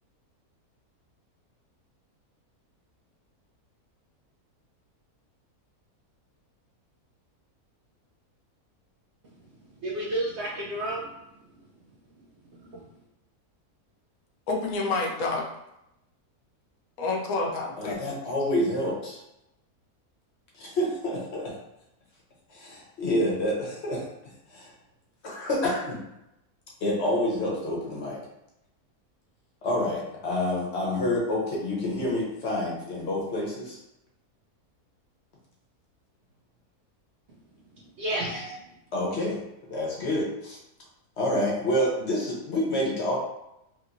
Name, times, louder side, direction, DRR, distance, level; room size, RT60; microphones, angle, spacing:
voice 1, 9.8-11.2 12.5-12.9 38.0-38.6, right 1 dB, 65° right, -4 dB, 0.7 m, -32 dB
voice 2, 14.5-15.5 17.0-18.0, left 3 dB, 75° left, -1 dB, 1.0 m, -28 dB
voice 3, 17.8-19.2 20.5-21.6 22.5-24.1 24.5-24.7 25.2-26.0 26.8-28.2 29.6-33.8 38.1-38.4 38.9-40.6 41.2-43.2, left 1 dB, 55° left, -3 dB, 0.9 m, -28 dB
3.0 x 2.9 x 2.5 m, 0.86 s
omnidirectional pair, 1.6 m